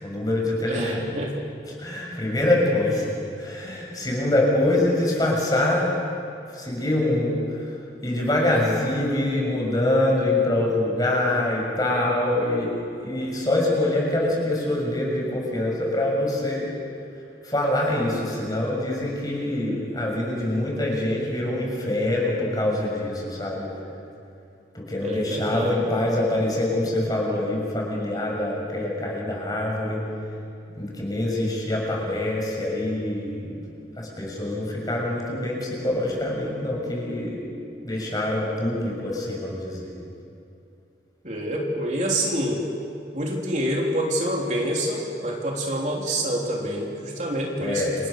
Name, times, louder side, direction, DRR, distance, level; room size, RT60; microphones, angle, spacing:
voice 1, 0.0-1.1 1.8-3.1 3.4-5.9 6.5-7.7 8.0-12.7 13.0-16.7 17.4-23.7 24.7-30.0 30.8-33.6 34.0-37.4 37.8-39.9 47.6-48.0, left 1 dB, 20° left, -2 dB, 6.7 m, -25 dB
voice 2, 0.6-1.4 25.0-25.9 41.2-42.6 43.1-47.8, right 1 dB, 40° right, -2 dB, 3.6 m, -27 dB
29.5 x 28.5 x 6.7 m, 2.6 s
head